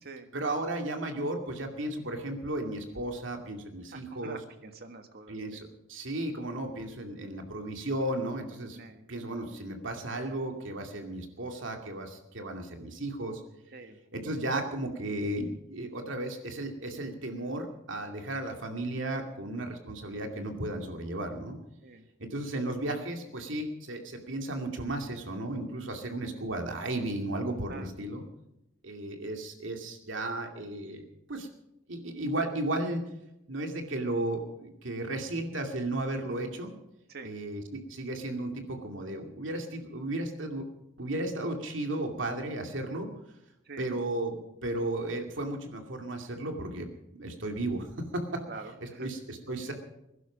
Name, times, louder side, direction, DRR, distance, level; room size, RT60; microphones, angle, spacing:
voice 1, 0.3-4.4 5.3-8.8 9.1-13.4 14.1-21.6 22.2-28.2 28.8-31.5 31.9-33.0 33.5-36.7 37.2-40.6 41.0-43.1 43.8-44.4 44.6-47.9 48.1-48.4 49.0-49.7, right 1 dB, 70° right, 4 dB, 2.4 m, -34 dB
voice 2, 3.9-5.6 8.7-9.0 13.7-14.0 21.8-22.1 27.7-27.9 37.1-37.3 43.6-44.0 48.5-49.1, right 3 dB, 55° right, 7 dB, 1.6 m, -45 dB
21.0 x 11.5 x 5.1 m, 0.87 s
head